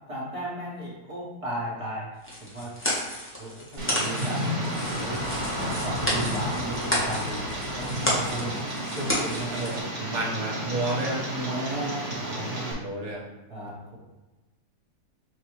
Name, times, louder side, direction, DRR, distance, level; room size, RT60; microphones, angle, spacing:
voice 1, 0.1-3.0 3.4-5.2 5.6-7.4 7.7-8.5 8.9-9.7 11.3-12.9 13.5-14.0, right 1 dB, 25° right, -7 dB, 1.0 m, -35 dB
sound 1, 2.2-9.8, equal, 10° left, 0.6 m, -32 dB
Tick, 3.8-12.7, right 1 dB, 45° right, 1.6 m, -32 dB
sound 2, 4.0-8.5, left 1 dB, 50° left, 1.8 m, -36 dB
voice 2, 9.5-11.2 12.7-13.2, right 2 dB, 70° right, -4 dB, 1.7 m, -31 dB
6.7 x 2.3 x 3.0 m, 1.1 s
omnidirectional pair, 1.7 m